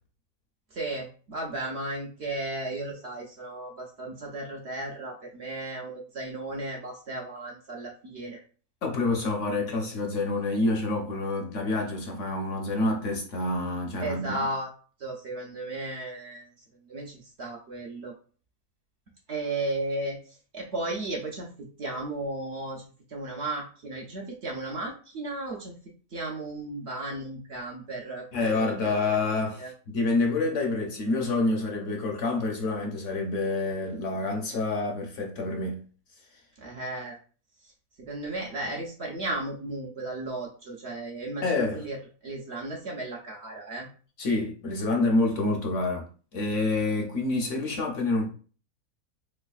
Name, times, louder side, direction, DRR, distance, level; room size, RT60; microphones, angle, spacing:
voice 1, 0.7-8.4 14.0-14.7 15.0-16.5 16.8-18.1 19.3-22.8 23.1-25.7 26.1-28.9 29.6-29.7 36.6-37.2 37.6-37.7 38.1-42.0 42.2-43.9, right 2 dB, 60° right, 0.7 m, -35 dB
voice 2, 8.8-14.4 28.3-35.8 41.4-41.9 44.2-46.1 46.3-48.3, left 2 dB, 60° left, 0.9 m, -27 dB
3.4 x 3.2 x 2.3 m
omnidirectional pair, 1.6 m